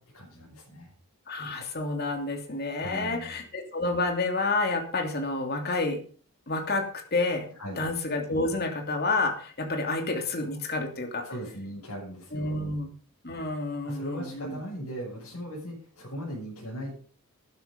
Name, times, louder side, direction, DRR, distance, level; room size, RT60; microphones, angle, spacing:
voice 1, 0.1-0.9 2.8-3.4 7.6-7.8 11.2-12.7 13.8-16.9, equal, 80° left, -6 dB, 6.8 m, -38 dB
voice 2, 1.3-6.0 6.5-7.5 7.8-11.2 12.3-12.9 13.2-14.6, left 2 dB, 45° left, 4 dB, 2.9 m, -29 dB
13.0 x 10.5 x 5.3 m, 0.43 s
head